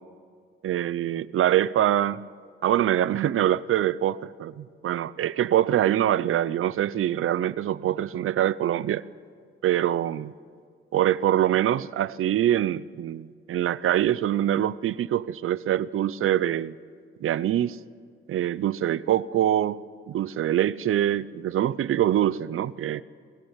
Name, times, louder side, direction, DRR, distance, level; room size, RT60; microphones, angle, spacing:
voice 1, 0.6-2.2 2.6-9.0 9.6-10.3 10.9-16.7 17.2-17.8 18.3-23.0, right 11 dB, 80° right, 18 dB, 0.6 m, -24 dB
22.5 x 19.0 x 7.2 m, 2.1 s
wide cardioid pair, 175°, 21 cm